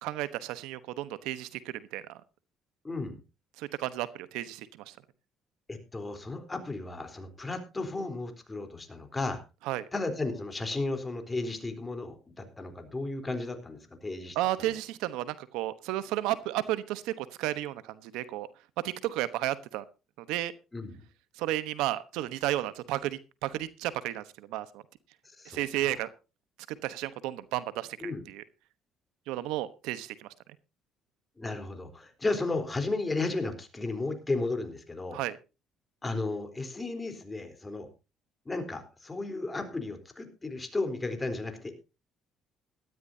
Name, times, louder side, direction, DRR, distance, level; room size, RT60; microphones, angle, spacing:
voice 1, 0.0-2.2 3.6-5.0 9.6-9.9 14.3-18.5 18.8-19.8 20.2-20.5 21.4-24.8 25.4-26.1 26.7-28.4 29.3-30.3 35.1-35.4, right 14 dB, 90° right, 14 dB, 1.0 m, -33 dB
voice 2, 2.8-3.2 5.7-9.4 9.9-14.7 20.7-20.9 25.4-25.9 28.0-28.2 31.4-35.2 36.0-37.9 38.5-41.8, left 3 dB, 20° left, 6 dB, 3.9 m, -34 dB
18.5 x 13.5 x 2.8 m, 0.30 s
cardioid pair, 90°, 0 cm